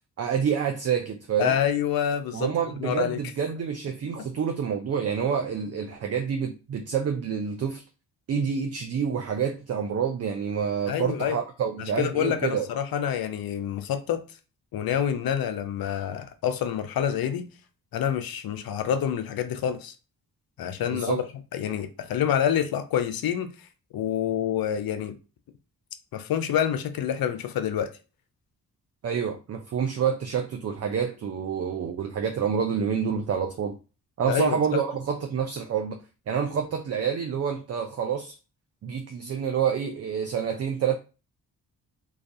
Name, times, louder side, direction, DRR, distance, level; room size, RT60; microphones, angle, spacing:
voice 1, 0.2-1.6 2.3-7.8 8.3-12.7 20.9-21.2 29.0-33.8 34.2-36.0 36.3-38.3 38.8-41.0, right 7 dB, 40° right, 0.4 m, -28 dB
voice 2, 1.4-2.5 2.8-3.2 10.9-11.4 12.0-14.2 14.7-17.5 17.9-19.9 20.6-21.2 21.5-23.5 23.9-25.1 26.1-27.9 34.3-34.8, left 9 dB, 65° left, 0.5 m, -27 dB
2.3 x 2.2 x 2.6 m
supercardioid pair, 45°, 39 cm